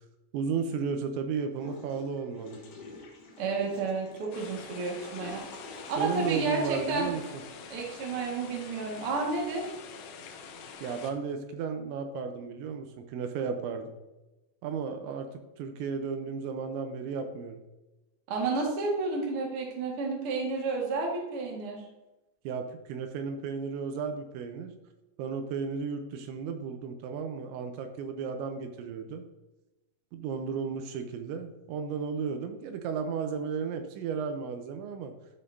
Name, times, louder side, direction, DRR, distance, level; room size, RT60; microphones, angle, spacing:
voice 1, 0.3-2.6 6.0-7.2 10.8-13.9 14.6-17.6 22.4-24.8 25.2-29.2 30.1-35.1, right 6 dB, 80° right, 7 dB, 3.0 m, -34 dB
Water / Toilet flush, 1.5-7.7, left 3 dB, 65° left, 2.2 m, -47 dB
voice 2, 3.4-5.4 5.9-7.1 7.7-9.7 18.3-21.8, right 3 dB, 65° right, -1 dB, 1.4 m, -31 dB
sound 1, 4.3-11.1, left 5 dB, 85° left, 2.1 m, -46 dB
12.5 x 5.6 x 2.7 m, 1.0 s
omnidirectional pair, 5.4 m